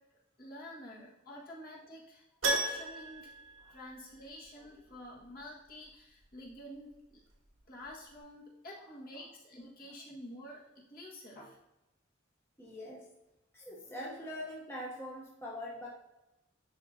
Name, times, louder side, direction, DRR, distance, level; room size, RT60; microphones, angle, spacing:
voice 1, 0.4-3.3 3.7-7.2 7.7-11.6, left 1 dB, 50° left, -4 dB, 1.7 m, -49 dB
Keyboard (musical), 2.4-4.5 4.7-4.8 7.5-7.6 7.9-8.0, right 2 dB, 85° right, 1.3 m, -35 dB
voice 2, 12.6-13.1 13.5-15.9, left 1 dB, 15° left, -4 dB, 0.9 m, -43 dB
10.5 x 3.9 x 2.8 m, 0.96 s
head